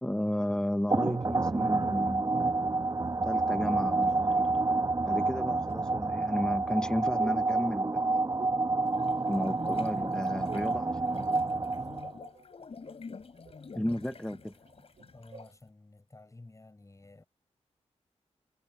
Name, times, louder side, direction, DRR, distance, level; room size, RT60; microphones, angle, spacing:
voice 1, 0.0-2.6 3.2-4.5 5.0-8.3 9.3-11.4 13.7-14.5, left 1 dB, 5° left, 0.8 m, -33 dB
sound 1, 0.9-12.3, right 3 dB, 30° right, 1.2 m, -29 dB
sound 2, 0.9-3.1 3.8-4.6 5.7-9.7 10.0-10.8 11.1-12.0 12.3-15.6, right 6 dB, 70° right, 4.1 m, -53 dB
sound 3, 8.9-15.6, left 5 dB, 55° left, 4.7 m, -48 dB
voice 2, 15.1-17.2, left 2 dB, 25° left, 6.0 m, -52 dB
cardioid pair, 75°, 12 cm